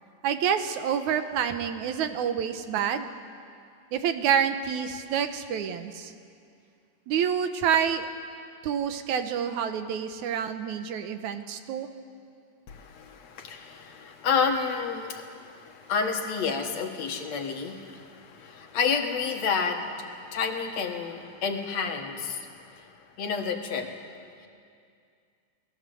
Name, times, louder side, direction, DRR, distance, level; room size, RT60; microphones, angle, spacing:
voice 1, 0.2-3.1 3.9-6.1 7.1-8.1 8.6-11.9, right 8 dB, 75° right, 8 dB, 2.4 m, -28 dB
voice 2, 12.7-23.9, left 5 dB, 65° left, 4 dB, 2.7 m, -30 dB
29.5 x 19.5 x 7.7 m, 2.3 s
omnidirectional pair, 3.5 m